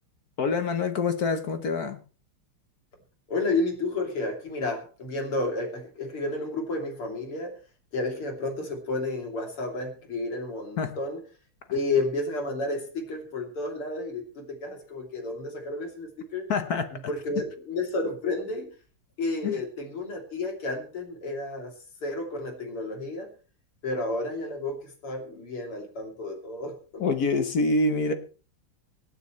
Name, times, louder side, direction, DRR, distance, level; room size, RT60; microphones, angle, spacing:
voice 1, 0.4-2.0 10.8-10.9 16.5-16.9 19.4-19.6 27.0-28.1, left 3 dB, 55° left, 8 dB, 1.3 m, -26 dB
voice 2, 3.3-7.5 7.9-11.2 11.7-16.5 17.1-18.7 19.2-21.7 22.0-23.3 23.8-24.8 25.0-27.0, left 2 dB, 85° left, 2 dB, 4.0 m, -31 dB
25.5 x 9.4 x 3.2 m, 0.37 s
omnidirectional pair, 2.4 m